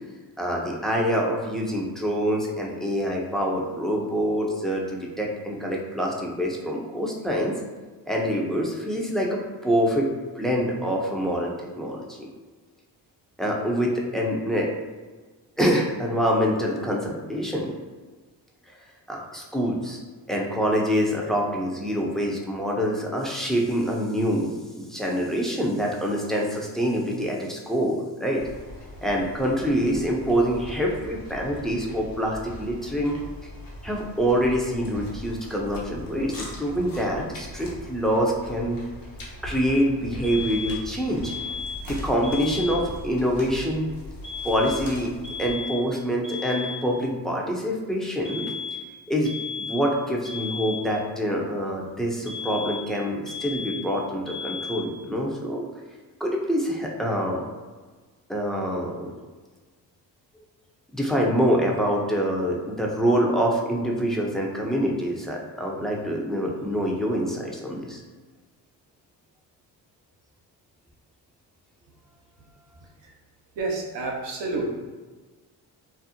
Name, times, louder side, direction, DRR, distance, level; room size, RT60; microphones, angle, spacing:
voice 1, 0.4-7.5 8.1-10.1 10.4-12.3 13.4-14.7 15.6-17.7 19.1-20.0 20.3-28.4 29.0-33.2 33.8-38.8 39.4-41.3 41.8-43.9 44.4-45.1 45.4-48.4 49.1-49.3 49.7-55.6 56.2-57.4 58.3-59.1 60.9-68.0, equal, ahead, -2 dB, 0.5 m, -25 dB
sound 1, 28.4-45.5, left 1 dB, 50° left, 0.9 m, -40 dB
sound 2, 40.2-40.9 41.2-41.9 42.2-42.9 44.2-44.9 45.2-45.9 46.2-46.9 48.2-48.9 49.2-49.9 50.2-50.9 52.3-52.9 53.3-53.9 54.3-54.9, left 6 dB, 70° left, 1.3 m, -34 dB
voice 2, 72.8-73.1 73.5-74.7, right 3 dB, 70° right, -1 dB, 0.8 m, -30 dB
2.6 x 2.0 x 2.7 m, 1.3 s
supercardioid pair, 45°, 45 cm